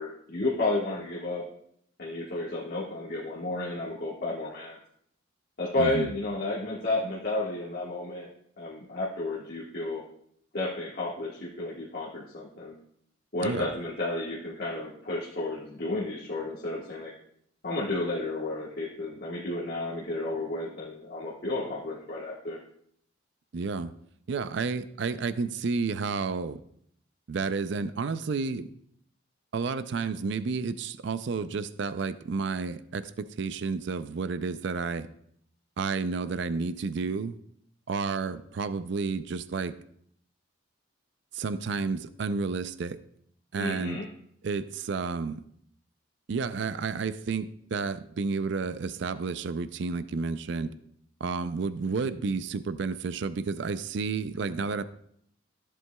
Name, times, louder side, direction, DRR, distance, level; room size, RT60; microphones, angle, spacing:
voice 1, 0.0-1.4 2.0-4.8 5.6-8.3 8.6-10.0 10.5-12.7 13.3-17.1 17.6-22.6 43.5-44.0, left 2 dB, 50° left, -7 dB, 1.5 m, -32 dB
voice 2, 5.8-6.1 13.4-13.7 23.5-23.9 24.3-26.6 27.3-28.7 29.5-35.1 35.8-37.4 37.9-39.7 41.3-43.0 43.5-44.0 44.4-45.4 46.3-50.7 51.2-54.8, right 4 dB, 60° right, 13 dB, 0.4 m, -31 dB
14.0 x 7.6 x 2.3 m, 0.68 s
head